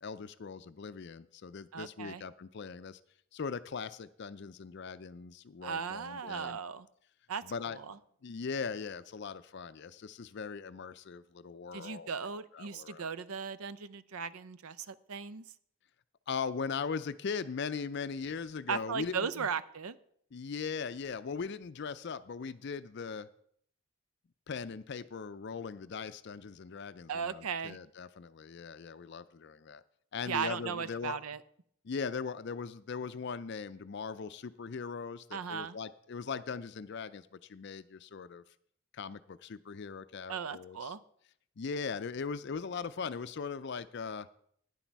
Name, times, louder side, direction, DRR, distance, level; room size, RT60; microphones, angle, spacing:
voice 1, 0.0-3.0 3.3-6.6 7.4-7.8 8.2-12.1 12.5-13.1 16.3-19.5 20.3-23.3 24.5-29.8 30.1-31.2 31.8-38.4 38.9-40.9 41.6-44.3, left 5 dB, 50° left, 14 dB, 0.4 m, -39 dB
voice 2, 1.7-2.2 5.6-6.9 7.3-7.4 7.7-8.0 11.7-15.4 18.7-20.0 27.1-27.8 30.3-31.4 35.3-35.8 40.3-41.0, right 6 dB, 85° right, 15 dB, 0.6 m, -37 dB
11.5 x 9.9 x 4.6 m, 0.65 s
head